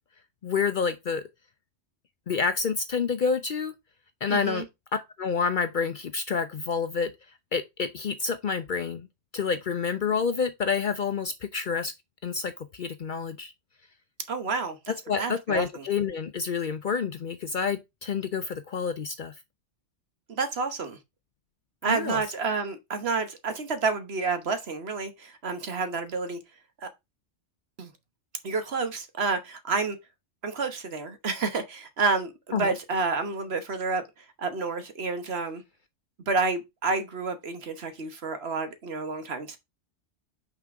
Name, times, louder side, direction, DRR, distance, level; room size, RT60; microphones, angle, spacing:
voice 1, 0.4-1.2 2.3-3.7 4.2-4.7 4.9-7.1 7.5-9.1 9.3-11.9 12.2-13.5 15.1-19.3 21.9-22.2 32.5-32.7, left 5 dB, 55° left, 0.6 m, -28 dB
voice 2, 4.3-4.6 14.3-15.8 20.3-21.0 21.8-26.4 26.8-26.9 27.8-27.9 28.4-30.0 30.4-34.0 34.4-35.6 36.3-39.6, right 4 dB, 60° right, 1.4 m, -29 dB
5.9 x 4.4 x 4.7 m
omnidirectional pair, 1.2 m